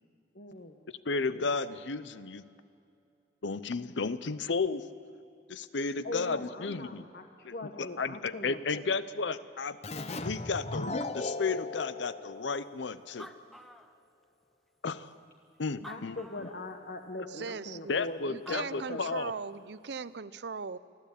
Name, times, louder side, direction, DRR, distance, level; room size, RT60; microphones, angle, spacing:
voice 1, 0.3-0.8 1.2-1.5 6.0-8.8 15.8-18.2 18.5-19.0, left 2 dB, 55° left, 5 dB, 1.1 m, -41 dB
voice 2, 1.0-2.5 3.4-4.9 5.5-7.0 7.4-7.5 7.8-9.8 10.2-13.3 14.8-15.1 15.6-16.5 17.9-19.3, left 4 dB, 80° left, 15 dB, 0.7 m, -33 dB
Keyboard (musical), 9.8-13.2, left 2 dB, 35° left, 0.7 m, -37 dB
Animal, 12.8-12.9 13.0-14.4 15.1-15.2 15.7-16.7 18.2-18.3 18.5-19.4, equal, ahead, 0.7 m, -50 dB
voice 3, 17.3-20.8, right 5 dB, 65° right, 16 dB, 0.6 m, -39 dB
24.5 x 14.5 x 8.4 m, 2.6 s
head